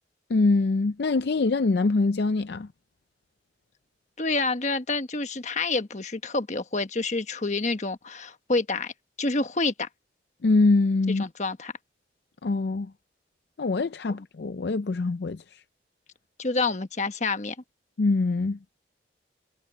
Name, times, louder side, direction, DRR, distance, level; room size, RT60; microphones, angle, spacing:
voice 1, 0.3-2.7 10.4-11.2 12.4-12.9 13.6-15.6 18.0-18.6, left 3 dB, 60° left, 0.5 m, -24 dB
voice 2, 4.2-8.9 9.2-9.9 11.1-11.7 16.4-17.5, left 3 dB, 40° left, 1.2 m, -28 dB
head